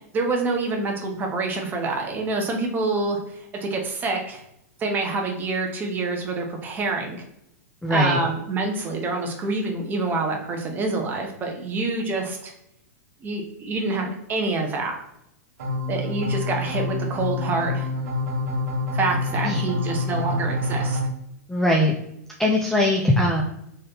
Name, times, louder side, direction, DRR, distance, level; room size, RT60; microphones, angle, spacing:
voice 1, 0.1-4.4 4.8-7.2 7.9-12.5 13.2-15.0 15.9-17.9 18.9-21.0, right 3 dB, 20° right, 2 dB, 0.9 m, -27 dB
voice 2, 7.8-8.2 19.4-19.6 21.5-21.9 22.4-23.4, left 1 dB, 5° left, -1 dB, 0.4 m, -20 dB
sound 1, 15.6-21.1, left 2 dB, 70° right, 1.2 m, -27 dB
3.9 x 3.1 x 2.8 m, 0.79 s
hypercardioid pair, 145°, 9 cm